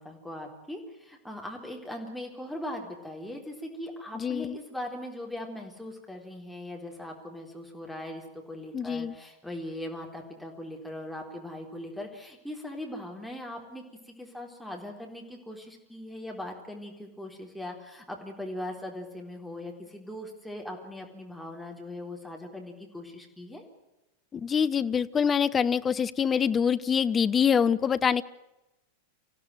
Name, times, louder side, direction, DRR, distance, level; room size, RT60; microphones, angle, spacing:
voice 1, 0.0-23.6, left 1 dB, ahead, 0 dB, 3.9 m, -40 dB
voice 2, 4.2-4.6 8.7-9.1 24.3-28.2, left 7 dB, 20° left, 13 dB, 0.8 m, -25 dB
26.0 x 16.0 x 9.2 m, 1.0 s
figure-of-eight pair, 90°, 0 cm